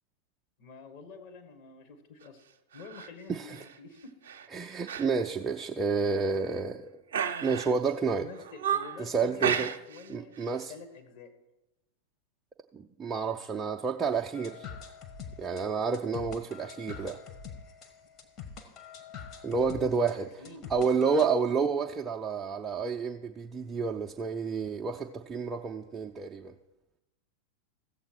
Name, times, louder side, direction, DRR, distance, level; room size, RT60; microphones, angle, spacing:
voice 1, 0.6-2.4 2.7-4.2 8.2-11.3 19.5-20.7, left 4 dB, 50° left, 4 dB, 1.5 m, -48 dB
sound 1, 2.7-3.1 3.5-3.8 4.2-4.5 4.9-5.1 5.4-5.5 6.1-6.6 7.1-7.9 8.3-9.0 9.4-10.1 10.3-10.6, right 8 dB, 60° right, 0.7 m, -33 dB
voice 2, 4.5-6.9 7.4-8.3 9.0-9.7 10.1-10.7 12.7-14.7 15.4-17.2 19.4-20.3 20.7-26.5, right 5 dB, 15° right, 0 dB, 0.5 m, -30 dB
sound 2, 14.3-21.3, left 6 dB, 35° left, 1.2 m, -45 dB
15.5 x 7.3 x 4.5 m, 0.96 s
figure-of-eight pair, 90°, 0 cm